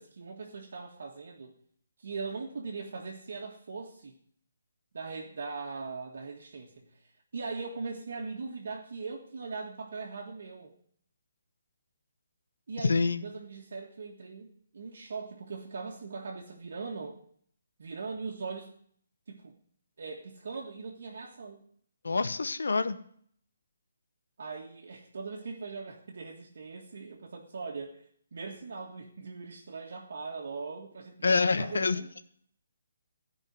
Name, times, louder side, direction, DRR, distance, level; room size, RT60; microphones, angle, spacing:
voice 1, 0.0-1.6 2.0-4.2 4.9-10.7 12.7-17.2 17.8-18.7 19.3-19.6 20.0-21.6 24.4-32.1, right 4 dB, 55° right, 0 dB, 1.6 m, -40 dB
voice 2, 12.8-13.2 22.0-23.0 31.2-32.0, left 4 dB, 90° left, 12 dB, 1.0 m, -26 dB
14.5 x 5.5 x 9.5 m, 0.62 s
hypercardioid pair, 180°, 0 cm